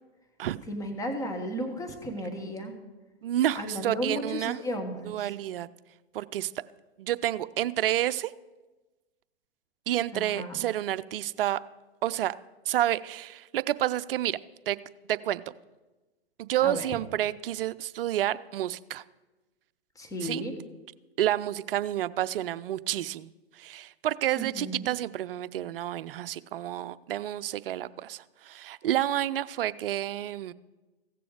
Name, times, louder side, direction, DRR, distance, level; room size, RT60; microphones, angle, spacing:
voice 1, 0.7-2.7 3.5-5.3 10.1-10.6 16.6-16.9 20.0-20.5 24.4-24.9, equal, 10° left, 5 dB, 1.4 m, -34 dB
voice 2, 3.2-4.6 5.0-5.7 6.1-6.5 7.0-8.3 9.9-11.6 12.0-12.3 12.7-14.4 14.7-14.8 15.1-15.4 16.4-19.0 20.2-20.4 21.2-23.3 23.6-30.5, right 12 dB, 60° right, 16 dB, 0.5 m, -29 dB
16.0 x 6.9 x 4.9 m, 1.2 s
hypercardioid pair, 120°, 31 cm